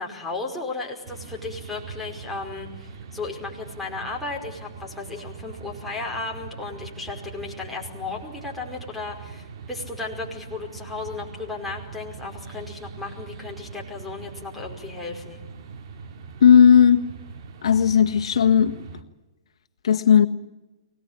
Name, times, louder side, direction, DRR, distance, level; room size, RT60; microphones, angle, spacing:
voice 1, 0.0-15.4, left 3 dB, ahead, 5.1 m, -35 dB
sound 1, 1.0-19.0, right 5 dB, 55° right, 2.4 m, -41 dB
voice 2, 16.4-17.1 17.6-18.8 19.8-20.3, left 8 dB, 75° left, 1.6 m, -15 dB
24.0 x 19.0 x 8.9 m
hypercardioid pair, 140°, 3 cm